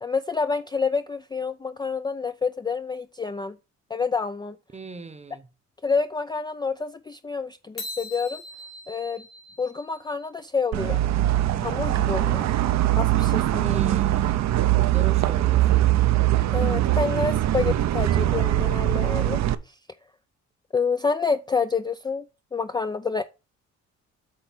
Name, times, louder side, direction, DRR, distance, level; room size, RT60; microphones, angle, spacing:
voice 1, 0.0-3.6 3.9-4.6 5.8-8.4 8.9-9.2 9.6-11.0 11.5-12.4 13.0-13.8 16.5-19.8 20.7-22.3 22.5-23.2, left 5 dB, 15° left, 0.4 m, -28 dB
voice 2, 4.7-5.5 13.6-15.9, right 4 dB, 20° right, 0.9 m, -39 dB
sound 1, 7.8-10.4, left 2 dB, 65° left, 2.3 m, -40 dB
sound 2, 10.7-19.6, right 14 dB, 65° right, 0.6 m, -22 dB
8.4 x 3.2 x 6.0 m
cardioid pair, 90°, 30 cm